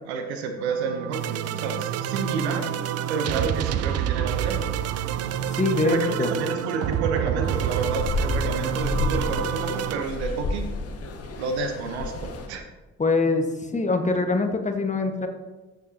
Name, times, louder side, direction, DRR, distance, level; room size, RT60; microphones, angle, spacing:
voice 1, 0.0-2.6 3.1-4.6 5.8-10.7 11.4-12.7, right 4 dB, 80° right, 5 dB, 1.0 m, -30 dB
sound 1, 0.7-10.0, right 10 dB, 50° right, 0.5 m, -28 dB
voice 2, 5.5-6.3 13.0-13.4 13.7-15.3, left 3 dB, 20° left, 5 dB, 1.5 m, -23 dB
sound 2, 7.4-12.5, left 3 dB, 45° left, 1.6 m, -31 dB
13.5 x 6.5 x 2.9 m, 1.2 s
figure-of-eight pair, 45°, 33 cm